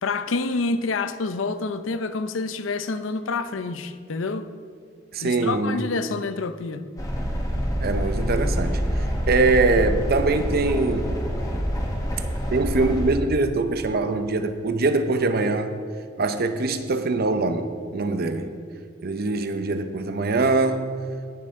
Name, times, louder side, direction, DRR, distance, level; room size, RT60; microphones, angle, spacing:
voice 1, 0.0-4.5 5.2-6.9, left 3 dB, 70° left, 0.6 m, -28 dB
voice 2, 5.1-5.8 7.8-11.2 12.5-15.7 16.2-18.5 19.0-20.9, right 3 dB, 50° right, 0.7 m, -23 dB
sound 1, 7.0-13.1, equal, 20° left, 1.4 m, -26 dB
17.5 x 6.5 x 3.7 m
head